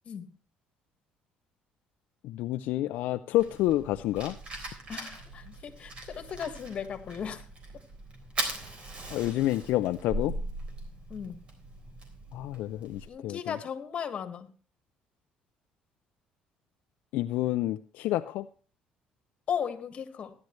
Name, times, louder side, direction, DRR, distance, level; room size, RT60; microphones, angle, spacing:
voice 1, 2.2-4.4 9.1-10.3 12.3-13.6 17.1-18.5, left 15 dB, 75° left, 9 dB, 0.4 m, -29 dB
Fire, 3.4-13.1, right 1 dB, 40° right, 3.6 m, -40 dB
voice 2, 4.9-7.4 11.1-11.4 13.1-14.5 19.5-20.3, left 7 dB, 45° left, 9 dB, 1.6 m, -36 dB
14.5 x 10.5 x 3.1 m, 0.38 s
cardioid pair, 115°, 3 cm